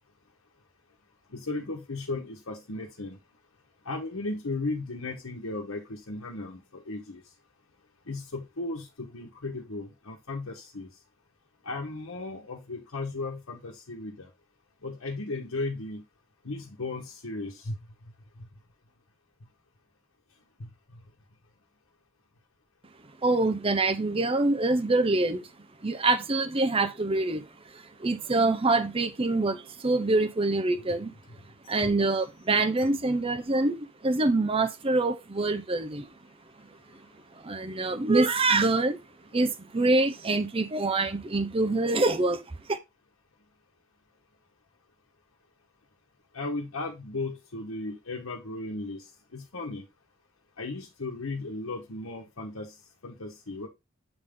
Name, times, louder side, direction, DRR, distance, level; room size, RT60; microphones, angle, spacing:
voice 1, 1.3-3.2 3.8-7.2 8.1-10.9 11.6-14.3 14.8-16.0 16.4-17.8 18.4-18.5 20.6-20.7 32.8-32.9 46.3-49.1 49.3-49.8 50.6-52.7 53.0-53.7, left 2 dB, 80° left, 1.1 m, -35 dB
voice 2, 23.2-25.5 25.8-27.5 27.7-31.1 31.7-36.1 37.3-39.0 39.3-42.4 42.7-42.8, right 2 dB, 25° right, 0.6 m, -25 dB
8.0 x 3.6 x 3.6 m
head